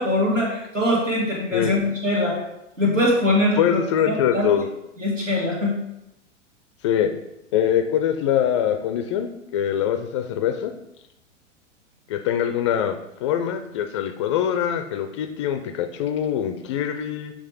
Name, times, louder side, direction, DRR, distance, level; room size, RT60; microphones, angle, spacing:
voice 1, 0.0-2.4 2.8-4.5 5.0-5.7, left 1 dB, 80° right, -2 dB, 2.2 m, -22 dB
voice 2, 3.6-4.7 6.8-7.1 7.5-10.7 12.1-17.3, left 9 dB, 25° left, 6 dB, 0.4 m, -23 dB
7.5 x 3.4 x 5.0 m, 0.86 s
figure-of-eight pair, 100°, 37 cm